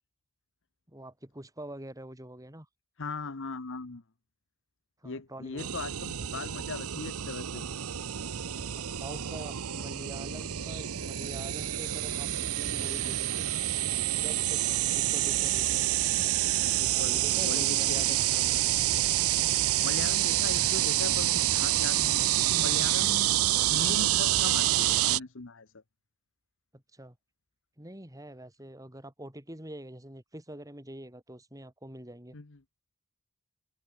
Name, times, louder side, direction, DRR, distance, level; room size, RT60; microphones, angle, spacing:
voice 1, 0.9-2.7 5.0-5.7 8.7-13.5 13.9-15.9 16.9-18.2 26.7-27.2 27.8-32.4, right 1 dB, 15° right, 4.8 m, -45 dB
voice 2, 3.0-4.0 5.0-7.6 16.8-18.2 19.8-23.3 23.7-25.8 32.3-32.6, left 3 dB, 55° left, 1.1 m, -39 dB
sound 1, 5.6-25.2, right 13 dB, 75° right, 0.8 m, -28 dB
sound 2, 7.6-19.4, equal, 5° left, 7.6 m, -55 dB
head